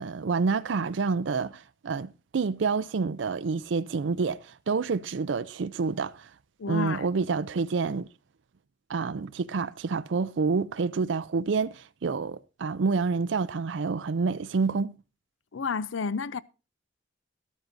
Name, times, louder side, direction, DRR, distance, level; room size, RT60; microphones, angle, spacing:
voice 1, 0.0-6.3 6.7-8.1 8.9-14.9, right 4 dB, 75° right, 0.5 m, -28 dB
voice 2, 6.6-7.1 15.5-16.4, left 5 dB, 90° left, 0.5 m, -30 dB
13.0 x 12.5 x 2.6 m
head